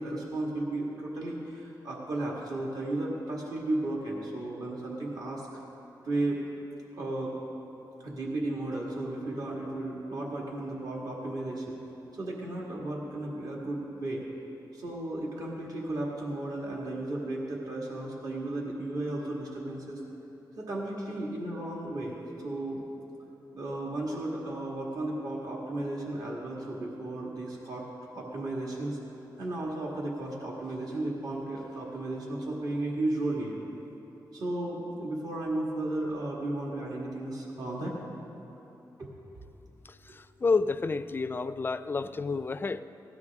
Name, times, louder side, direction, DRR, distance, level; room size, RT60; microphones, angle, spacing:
voice 1, 0.0-5.6 6.0-6.4 6.9-7.4 8.0-11.8 12.1-14.2 14.7-20.0 20.6-22.8 23.5-27.9 28.1-29.0 29.4-33.6 34.3-38.0 39.0-39.1 40.1-40.2, right 2 dB, 60° right, -3 dB, 1.9 m, -34 dB
voice 2, 40.1-42.8, left 4 dB, 30° left, 12 dB, 0.3 m, -29 dB
17.0 x 12.0 x 3.6 m, 3.0 s
wide cardioid pair, 115°, 7 cm